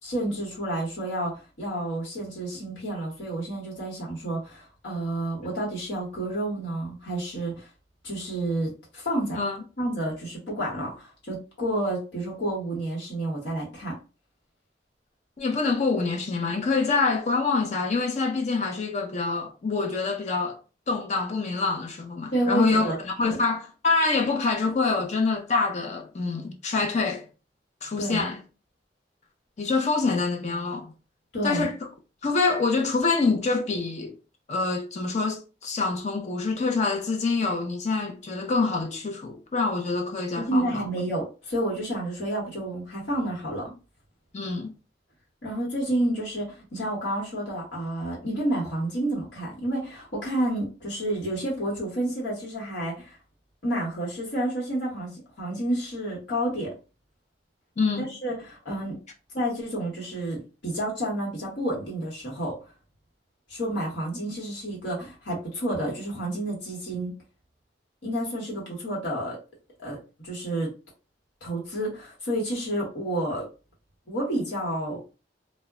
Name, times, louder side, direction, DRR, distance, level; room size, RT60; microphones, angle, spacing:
voice 1, 0.0-7.7 8.0-9.4 9.8-14.0 22.3-23.0 23.2-23.4 28.0-28.2 31.3-31.7 40.4-43.7 45.4-53.2 53.6-56.7 58.0-59.0 59.3-62.6 63.5-67.1 68.0-69.4 69.8-70.7 71.4-73.5 74.1-75.1, right 1 dB, 80° left, 1.1 m, -30 dB
voice 2, 15.4-20.6 20.9-27.2 27.8-28.4 29.6-30.9 31.4-31.8 32.2-34.2 34.5-40.9 44.3-44.7 57.8-58.2, left 3 dB, 40° left, 0.4 m, -26 dB
2.1 x 2.0 x 3.5 m
head